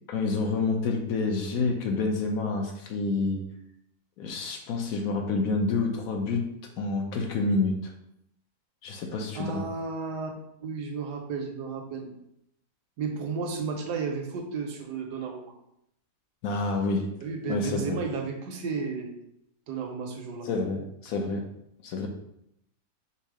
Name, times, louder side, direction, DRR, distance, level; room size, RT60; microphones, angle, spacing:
voice 1, 0.1-3.4 4.2-6.5 6.8-7.9 8.8-9.6 16.4-17.0 17.5-18.0 20.4-21.4 21.8-22.1, left 3 dB, 70° left, 3 dB, 1.1 m, -28 dB
voice 2, 9.3-10.3 10.6-12.1 13.0-15.5 17.2-19.1 19.7-20.5, right 5 dB, 85° right, 2 dB, 1.4 m, -33 dB
5.4 x 2.1 x 4.8 m, 0.77 s
omnidirectional pair, 1.7 m